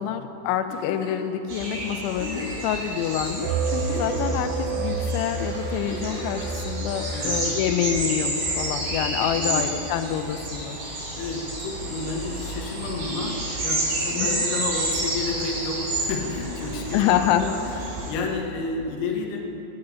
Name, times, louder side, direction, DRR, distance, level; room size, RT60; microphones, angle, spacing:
voice 1, 0.0-10.8 14.1-14.4 16.9-17.5, left 10 dB, 90° left, 7 dB, 2.7 m, -27 dB
Giggle, 0.7-1.3 2.1-2.6 3.3-3.4 3.7-4.5 5.6-6.3 7.5-8.1 9.4-9.8 11.3-11.4, left 2 dB, 45° left, 2.4 m, -37 dB
sound 1, 1.5-18.1, right 2 dB, 45° right, 3.9 m, -30 dB
sound 2, 3.4-10.0, right 4 dB, 85° right, 3.2 m, -31 dB
voice 2, 11.2-17.0 17.3-19.4, left 3 dB, 70° left, 0 dB, 2.6 m, -31 dB
10.0 x 8.7 x 9.4 m, 3.0 s
omnidirectional pair, 6.0 m